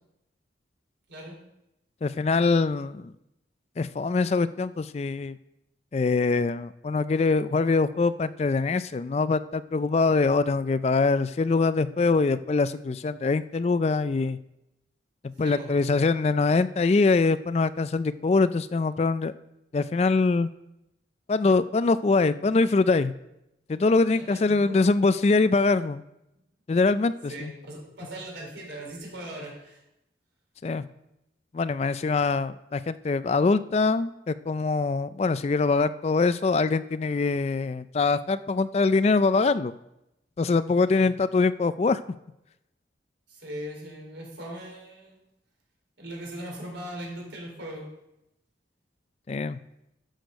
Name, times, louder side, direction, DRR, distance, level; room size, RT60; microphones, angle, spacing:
voice 1, 2.0-3.1 3.8-5.4 5.9-14.4 15.4-19.3 19.7-20.5 21.3-23.1 23.7-26.0 26.7-27.5 30.6-30.8 31.5-39.7 40.4-42.0 49.3-49.6, left 3 dB, 35° left, 14 dB, 0.3 m, -23 dB
voice 2, 24.1-24.8 27.3-29.8 40.9-41.1 43.3-45.2 46.0-47.9, right 1 dB, 80° right, -1 dB, 4.0 m, -39 dB
13.0 x 6.5 x 5.2 m, 0.88 s
head